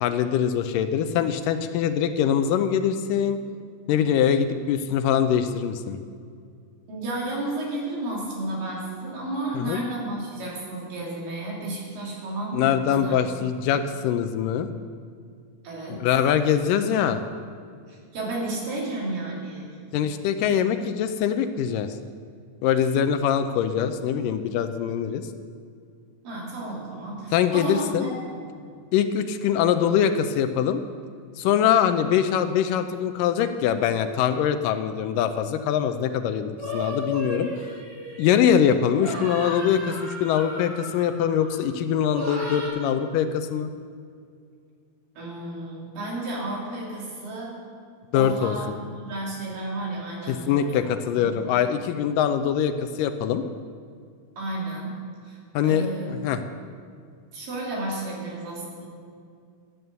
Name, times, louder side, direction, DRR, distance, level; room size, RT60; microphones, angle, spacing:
voice 1, 0.0-3.4 3.9-6.0 9.6-9.8 12.5-14.7 15.9-17.2 19.9-22.0 22.6-25.3 27.3-28.1 28.9-30.8 31.4-37.5 38.2-43.7 48.1-48.6 50.3-53.4 55.5-56.4, left 8 dB, 80° left, 9 dB, 2.2 m, -23 dB
voice 2, 6.9-13.2 15.6-16.0 17.9-19.8 26.2-28.5 45.2-47.6 48.1-50.7 51.1-51.3 54.4-55.0 55.2-56.1 57.3-58.9, right 2 dB, 75° right, -4 dB, 4.7 m, -32 dB
sound 1, 36.6-38.5 39.0-41.6 42.1-42.7, left 1 dB, 55° right, 5.5 m, -35 dB
12.5 x 9.3 x 6.8 m, 2.2 s
omnidirectional pair, 4.0 m